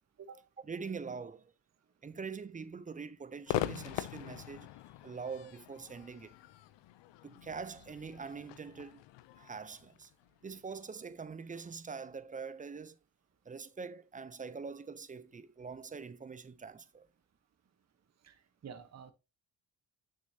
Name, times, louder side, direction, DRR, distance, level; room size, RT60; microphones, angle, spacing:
voice 1, 0.6-1.5 2.0-4.7 5.0-6.4 7.2-9.0 9.4-10.1 10.4-13.0 13.5-17.1, right 5 dB, 20° right, 0.4 m, -44 dB
Crowd / Fireworks, 3.5-10.8, left 14 dB, 85° left, 0.5 m, -42 dB
voice 2, 18.6-19.1, right 6 dB, 40° right, 1.0 m, -48 dB
6.6 x 6.5 x 2.7 m
cardioid pair, 90°, 42 cm